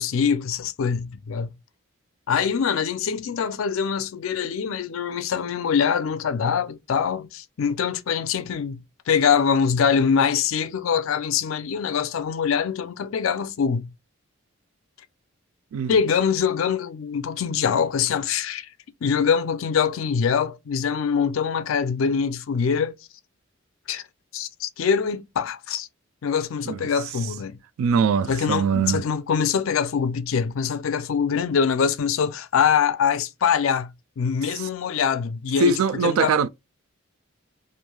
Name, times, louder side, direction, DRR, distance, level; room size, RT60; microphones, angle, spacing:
voice 1, 0.0-1.5 2.3-8.8 9.1-13.9 15.9-18.7 19.0-23.0 23.9-24.0 24.3-25.9 26.2-27.6 28.3-33.9 34.2-36.5, left 6 dB, 75° left, 0.4 m, -24 dB
voice 2, 27.8-29.0 34.6-34.7 35.6-36.5, right 5 dB, 85° right, 0.3 m, -22 dB
3.1 x 2.5 x 2.2 m
head